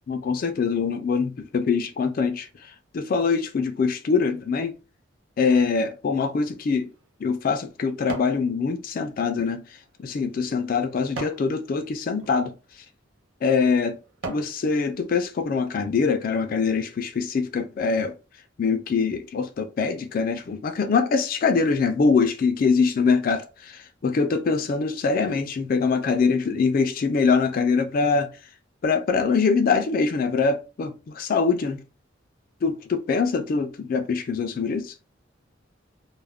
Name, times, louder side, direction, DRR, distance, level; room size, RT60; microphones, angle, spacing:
voice 1, 0.1-2.5 2.9-4.7 5.4-6.9 7.2-9.6 10.0-12.5 13.4-14.0 14.3-18.1 18.6-28.3 28.8-31.8 32.6-34.9, left 5 dB, 45° left, 0.3 m, -23 dB
sound 1, 6.6-8.4 8.9-11.5 12.1-12.4 13.0-13.2 13.7-14.6 15.1-15.2, right 3 dB, 80° right, 0.6 m, -39 dB
2.3 x 2.0 x 3.4 m
head